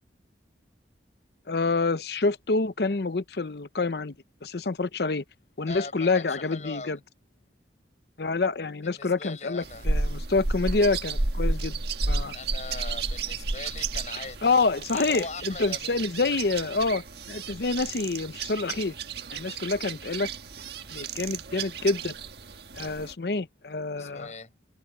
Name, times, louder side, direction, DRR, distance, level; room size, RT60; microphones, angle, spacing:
voice 1, 1.5-4.1 4.4-5.2 5.6-7.0 8.2-11.8 12.1-12.3 14.4-18.9 19.3-20.3 20.9-22.1 22.8-24.3, left 3 dB, 60° left, 0.7 m, -27 dB
voice 2, 5.7-7.0 8.8-9.9 12.3-14.5 14.9-16.1 23.9-24.5, left 3 dB, 40° left, 7.5 m, -40 dB
sound 1, 9.6-23.1, right 3 dB, 65° right, 1.5 m, -32 dB
head